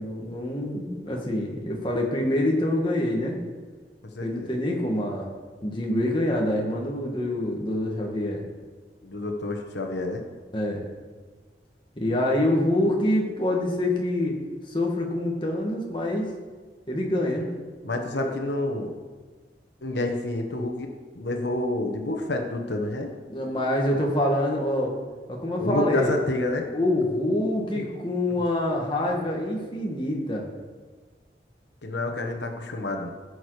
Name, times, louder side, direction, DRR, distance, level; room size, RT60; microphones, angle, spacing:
voice 1, 0.0-3.4 4.2-5.3 5.6-8.4 10.5-10.8 12.0-14.3 14.7-16.3 16.9-17.5 18.1-18.3 23.3-24.9 25.3-26.1 26.7-30.5, left 1 dB, 30° left, -1 dB, 1.8 m, -26 dB
voice 2, 4.1-4.5 9.0-10.2 17.8-19.0 19.8-23.1 25.6-26.7 27.7-27.9 28.3-28.4 31.8-33.1, left 2 dB, 90° left, 3 dB, 1.3 m, -29 dB
17.0 x 6.4 x 5.0 m, 1.4 s
head